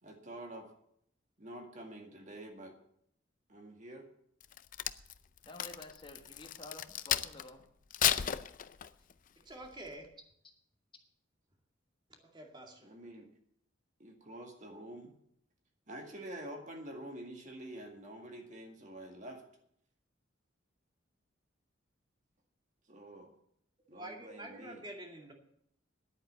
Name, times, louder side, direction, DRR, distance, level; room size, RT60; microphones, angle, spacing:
voice 1, 0.0-0.7 1.4-2.8 3.5-4.1 12.8-13.3 14.0-15.1 15.9-19.4 22.9-23.3 23.9-24.8, right 1 dB, 40° right, 3 dB, 2.0 m, -47 dB
Crack, 4.4-7.5 7.9-9.1 9.6-9.9, left 10 dB, 45° left, 0.5 m, -33 dB
voice 2, 5.4-7.6, left 2 dB, 25° left, 4 dB, 1.4 m, -50 dB
voice 3, 9.4-10.1 12.2-12.9 23.9-25.3, right 1 dB, 25° right, 2 dB, 2.3 m, -47 dB
10.5 x 8.9 x 8.1 m, 0.70 s
head